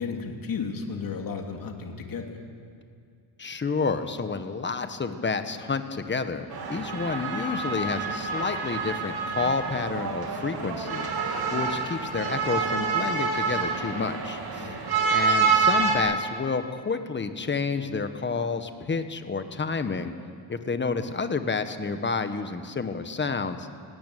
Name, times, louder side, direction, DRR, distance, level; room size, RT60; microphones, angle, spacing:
voice 1, 0.0-2.4 14.6-14.8, left 5 dB, 45° left, 3 dB, 2.8 m, -33 dB
voice 2, 3.4-11.1 11.5-14.8 15.1-20.1 20.5-23.7, left 4 dB, 25° left, 9 dB, 1.2 m, -30 dB
sound 1, 6.5-16.0, right 5 dB, 50° right, 3.1 m, -27 dB
17.5 x 17.5 x 9.2 m, 2.2 s
cardioid pair, 120°, 46 cm